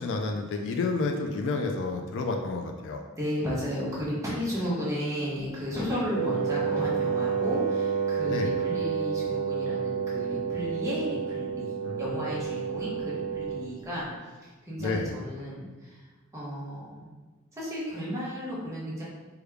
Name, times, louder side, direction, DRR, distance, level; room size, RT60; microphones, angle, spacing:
voice 1, 0.0-3.0 8.3-8.5 11.8-12.0 14.8-15.1, left 3 dB, 60° left, 3 dB, 0.3 m, -30 dB
voice 2, 3.2-11.7 12.0-14.1 14.4-16.0 16.3-17.1 17.5-19.0, equal, 15° right, -7 dB, 0.8 m, -33 dB
Wind instrument woodwind instrument, 6.1-13.7, right 6 dB, 60° right, 0.5 m, -30 dB
3.4 x 2.2 x 3.2 m, 1.3 s
head